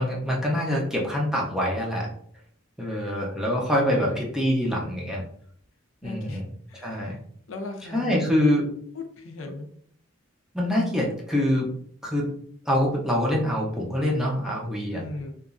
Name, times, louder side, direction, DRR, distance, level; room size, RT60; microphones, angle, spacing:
voice 1, 0.0-2.1 2.8-5.2 6.0-6.5 6.7-7.2 7.9-8.7 10.5-11.7 12.0-12.3 12.7-15.0, equal, 5° right, -3 dB, 0.5 m, -25 dB
voice 2, 3.9-4.3 6.0-6.4 6.7-7.2 7.5-8.5 8.9-9.7 14.9-15.3, left 2 dB, 75° left, 4 dB, 0.5 m, -37 dB
2.9 x 2.4 x 2.4 m, 0.63 s
head